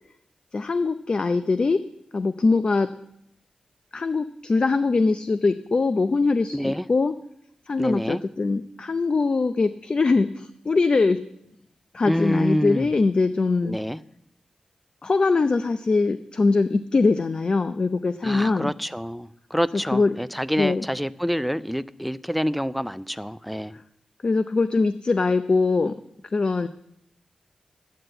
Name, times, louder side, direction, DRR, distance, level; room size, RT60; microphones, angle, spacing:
voice 1, 0.5-1.8 2.1-2.9 3.9-7.1 7.7-11.2 11.9-13.8 15.0-18.7 19.7-20.2 20.6-20.8 23.7-23.8 24.2-26.0 26.3-26.7, left 3 dB, 50° left, 0.6 m, -22 dB
voice 2, 6.5-6.8 7.8-8.2 12.1-12.9 13.6-14.0 18.2-23.7, equal, ahead, 0.5 m, -27 dB
12.0 x 9.4 x 7.8 m
wide cardioid pair, 75°, 2 cm